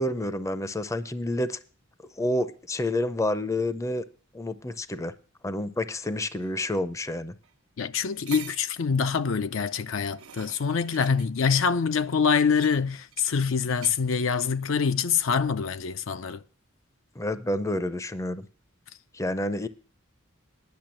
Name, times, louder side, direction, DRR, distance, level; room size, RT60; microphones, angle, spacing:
voice 1, 0.0-1.6 2.2-4.0 4.3-5.1 5.4-7.3 17.2-18.5 19.1-19.7, left 1 dB, 15° left, 0.5 m, -29 dB
sound 1, 6.4-6.5 7.4-7.5 8.0-8.8 9.7-11.3 12.3-13.4 13.7-14.0 14.4-14.7, right 10 dB, 85° right, 0.9 m, -46 dB
voice 2, 7.8-16.4, left 6 dB, 65° left, 0.5 m, -25 dB
10.5 x 6.5 x 7.6 m
head